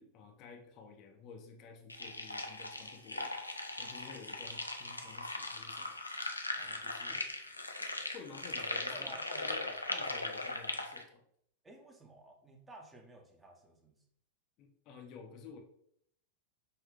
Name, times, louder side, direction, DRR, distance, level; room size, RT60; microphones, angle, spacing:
voice 1, 0.0-3.4 3.8-6.0 6.6-7.2 8.1-11.2 14.6-15.6, left 5 dB, 40° left, 3 dB, 0.6 m, -52 dB
sound 1, 1.9-11.0, left 2 dB, 85° left, 0.5 m, -39 dB
voice 2, 6.5-7.3 8.9-10.0 11.6-14.0, right 2 dB, 15° right, 2 dB, 0.9 m, -54 dB
5.5 x 2.6 x 3.6 m, 0.71 s
figure-of-eight pair, 90°, 0 cm